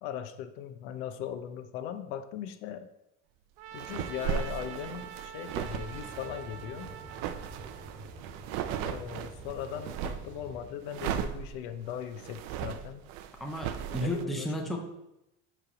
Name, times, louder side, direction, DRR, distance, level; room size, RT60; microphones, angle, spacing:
voice 1, 0.0-2.9 3.7-6.9 8.8-13.0 13.9-14.7, left 9 dB, 75° left, 10 dB, 0.8 m, -39 dB
Trumpet, 3.6-8.0, right 9 dB, 75° right, 0.9 m, -45 dB
sound 1, 3.7-10.3 10.9-14.2, right 9 dB, 50° right, 0.5 m, -37 dB
sound 2, 5.6-10.7, right 2 dB, 35° right, 1.9 m, -48 dB
voice 2, 13.4-14.9, equal, ahead, 1 dB, 0.5 m, -33 dB
7.5 x 3.4 x 6.0 m, 0.87 s
cardioid pair, 170°, 34 cm